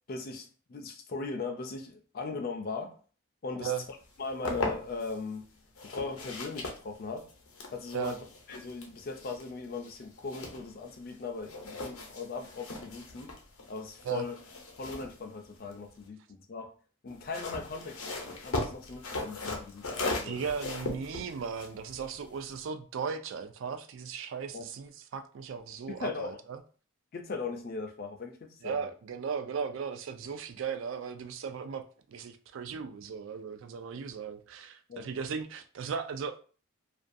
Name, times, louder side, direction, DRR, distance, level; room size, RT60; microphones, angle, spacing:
voice 1, 0.1-3.0 3.4-3.7 4.2-5.4 5.8-7.3 7.7-8.2 8.5-13.3 13.7-14.3 14.8-16.7 17.0-18.0 18.4-20.4 24.5-24.6 25.9-26.4 27.1-28.8 34.9-35.1, left 4 dB, 45° left, 0.4 m, -39 dB
sound 1, 4.0-5.2 5.7-11.2 11.4-16.1 17.1-22.6, left 2 dB, 85° left, 0.6 m, -39 dB
voice 2, 20.2-26.6 28.6-36.4, right 6 dB, 65° right, 0.3 m, -37 dB
2.5 x 2.2 x 2.5 m
head